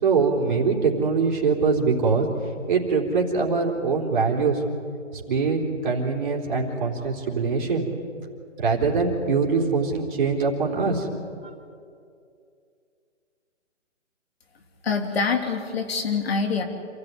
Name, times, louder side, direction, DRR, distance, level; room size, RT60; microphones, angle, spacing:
voice 1, 0.0-2.3 2.7-4.6 5.1-7.9 8.6-11.1, right 4 dB, 35° right, -2 dB, 3.7 m, -23 dB
voice 2, 14.8-16.6, left 5 dB, 50° left, 5 dB, 3.0 m, -25 dB
27.5 x 14.0 x 9.7 m, 2.4 s
hypercardioid pair, 165°, 38 cm